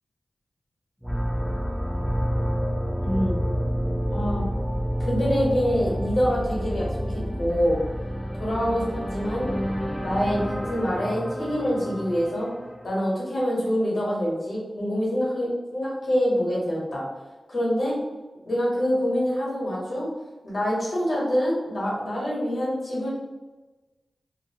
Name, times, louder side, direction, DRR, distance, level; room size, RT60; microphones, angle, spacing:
sound 1, 1.0-13.0, equal, ahead, 0.4 m, -29 dB
voice 1, 3.0-3.4 4.1-4.5 5.0-7.8 8.3-9.5 10.0-12.5 12.8-17.0 17.5-18.0 18.4-20.1 20.4-23.1, equal, 60° left, -5 dB, 1.1 m, -25 dB
2.6 x 2.6 x 2.7 m, 1.2 s
wide cardioid pair, 115°, 0 cm